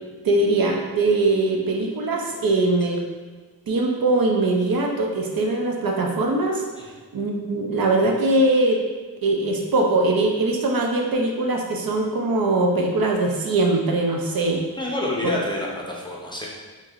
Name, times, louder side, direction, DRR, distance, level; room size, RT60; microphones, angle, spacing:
voice 1, 0.2-3.0 3.7-6.6 7.1-8.8 9.2-14.6 15.2-15.3, right 2 dB, 60° right, 1 dB, 0.6 m, -21 dB
voice 2, 14.8-16.5, left 1 dB, 10° left, -3 dB, 0.6 m, -28 dB
4.5 x 2.8 x 2.5 m, 1.4 s
wide cardioid pair, 95°, 40 cm